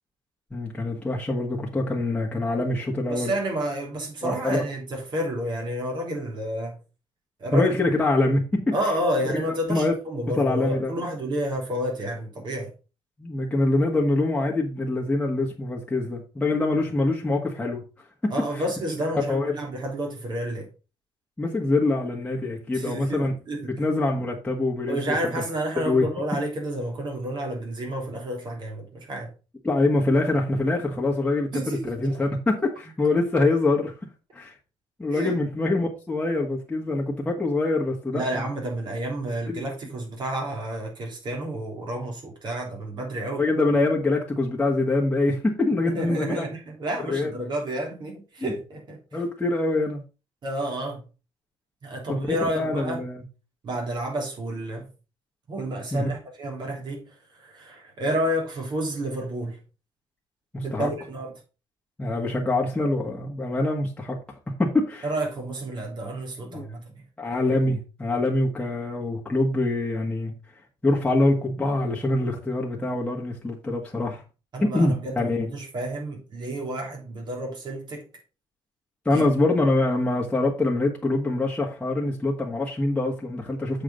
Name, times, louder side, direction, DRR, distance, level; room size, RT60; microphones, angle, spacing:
voice 1, 0.5-3.3 4.2-4.6 7.5-8.7 9.3-9.4 9.7-9.9 10.4-10.9 13.2-17.8 18.2-18.6 19.3-19.5 21.4-23.3 23.6-25.0 25.2-25.4 25.8-26.1 29.6-33.9 34.3-34.5 35.0-38.5 39.5-39.6 43.4-46.4 47.1-47.3 48.4-48.5 49.1-50.0 52.1-53.2 55.9-56.1 60.5-60.9 62.0-64.2 64.6-65.1 66.4-66.7 67.2-70.3 70.8-74.2 74.6-75.5 79.1-83.8, left 2 dB, 10° left, 1.7 m, -24 dB
voice 2, 3.1-6.8 7.4-7.7 8.7-12.7 18.3-20.7 22.7-23.7 24.9-29.3 31.5-32.2 35.1-35.3 38.1-43.5 45.8-49.0 50.4-51.0 51.8-53.0 53.6-54.9 55.5-57.1 57.4-59.6 60.6-61.3 65.0-66.8 74.5-78.1 79.1-79.2, right 1 dB, 45° right, 3.4 m, -30 dB
7.6 x 4.9 x 5.1 m
cardioid pair, 110°, 10 cm